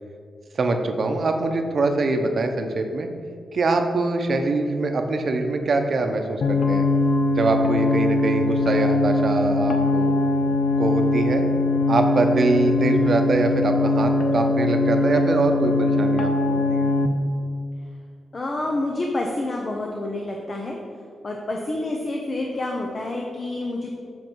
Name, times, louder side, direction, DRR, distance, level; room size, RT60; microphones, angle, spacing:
voice 1, 0.5-3.1 3.5-6.9 7.3-10.1 10.8-11.5 11.9-16.9, right 3 dB, 50° right, 5 dB, 0.8 m, -23 dB
sound 1, 6.4-17.1, left 2 dB, 90° left, 0.6 m, -21 dB
voice 2, 18.3-20.8 21.2-23.9, left 2 dB, 40° left, 1 dB, 0.8 m, -28 dB
7.6 x 5.6 x 4.6 m, 2.2 s
cardioid pair, 105°, 0 cm